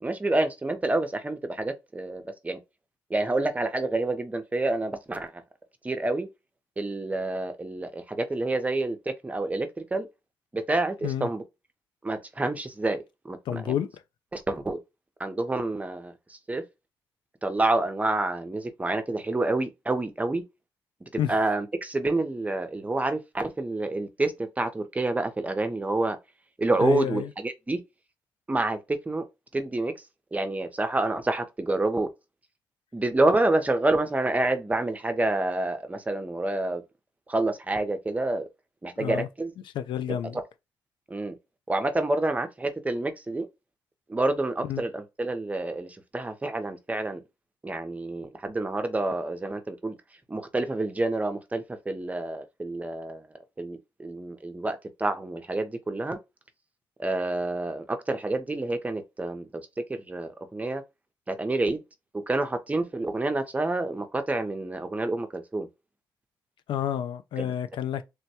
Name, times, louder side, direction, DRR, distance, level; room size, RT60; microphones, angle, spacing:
voice 1, 0.0-2.6 3.1-5.3 5.8-6.3 6.8-10.1 10.5-11.4 12.0-13.8 14.3-14.8 15.2-16.6 17.4-20.4 21.1-26.2 26.6-27.8 28.5-29.2 29.5-29.9 30.3-32.1 32.9-36.8 37.3-38.5 38.8-39.5 40.1-40.4 41.1-41.3 41.7-43.5 44.1-47.2 47.6-50.0 50.3-53.2 53.6-56.2 57.0-59.6 59.9-60.8 61.3-61.8 62.1-65.7 67.4-67.5, right 2 dB, 20° right, 0.6 m, -28 dB
voice 2, 13.5-13.9 21.2-21.4 26.8-27.3 39.0-39.3 39.7-40.4 44.7-44.8 66.7-68.0, left 10 dB, 80° left, 0.3 m, -29 dB
3.4 x 2.1 x 2.7 m
cardioid pair, 90°, 8 cm